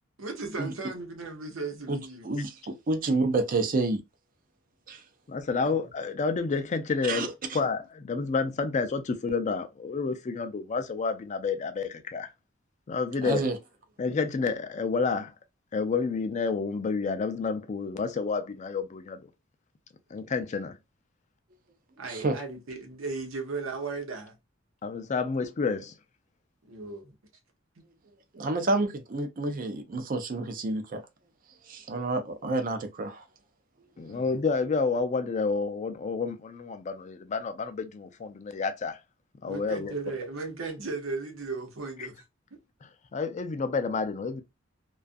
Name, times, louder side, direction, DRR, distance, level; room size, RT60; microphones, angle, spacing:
voice 1, 0.2-2.3 5.6-5.8 22.0-24.4 26.6-27.1 34.1-34.2 39.5-42.2, right 3 dB, 90° right, 0.9 m, -36 dB
voice 2, 2.2-4.0 4.9-5.0 7.0-7.6 13.2-13.6 22.0-22.4 28.3-31.0 31.7-33.2, right 2 dB, 45° right, 0.5 m, -29 dB
voice 3, 5.3-12.3 12.9-13.4 14.0-15.3 15.7-19.2 20.1-20.7 24.8-25.9 34.0-39.0 39.4-39.9 43.1-44.4, left 4 dB, 35° left, 0.4 m, -29 dB
2.4 x 2.3 x 2.5 m
head